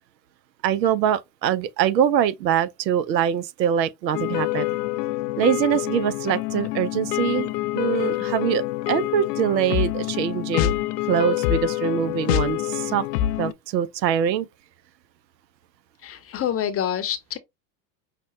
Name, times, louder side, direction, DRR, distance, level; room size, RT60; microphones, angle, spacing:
voice 1, 0.6-4.7 5.4-10.7 11.0-13.1 13.4-14.5, right 9 dB, 85° right, 0.6 m, -23 dB
sound 1, 4.1-13.5, left 14 dB, 70° left, 0.6 m, -26 dB
voice 2, 16.0-17.4, left 9 dB, 30° left, 0.7 m, -27 dB
5.7 x 2.2 x 3.0 m
hypercardioid pair, 90°, 50 cm